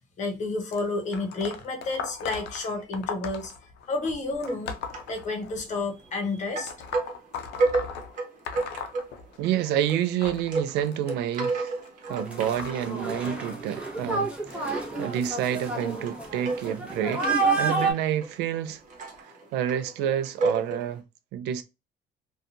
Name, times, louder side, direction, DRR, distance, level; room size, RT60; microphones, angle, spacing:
voice 1, 0.2-3.5 3.9-4.7 5.1-6.7, left 3 dB, 45° left, 0.9 m, -30 dB
sound 1, 0.7-5.8 6.6-9.6 9.9-15.3 16.0-16.3 17.3-17.4 18.3-18.4 19.1-19.2, left 6 dB, 90° left, 0.5 m, -39 dB
sound 2, 4.4-5.2 5.5-6.3 6.5-21.0, right 3 dB, 50° right, 1.0 m, -33 dB
voice 2, 9.4-11.7 12.1-18.8 19.2-21.0 21.3-21.6, right 10 dB, 90° right, 0.4 m, -29 dB
sound 3, 12.1-17.9, right 3 dB, 5° right, 0.8 m, -29 dB
2.6 x 2.3 x 2.6 m
cardioid pair, 110°, 17 cm